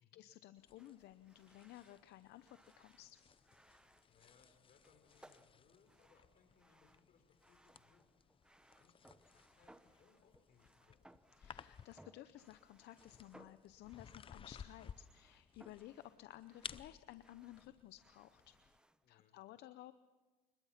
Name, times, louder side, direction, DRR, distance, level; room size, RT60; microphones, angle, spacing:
voice 1, 0.0-3.2 11.4-18.5 19.1-19.9, left 14 dB, 80° left, 12 dB, 0.7 m, -56 dB
sound 1, 0.6-18.8, left 7 dB, 30° left, 0.6 m, -58 dB
sound 2, 0.8-19.1, right 1 dB, 5° right, 0.9 m, -67 dB
voice 2, 4.0-8.1 8.7-11.0 19.0-19.4, left 6 dB, 55° left, 6 dB, 4.5 m, -71 dB
25.5 x 21.0 x 5.9 m, 1.2 s
cardioid pair, 110°, 17 cm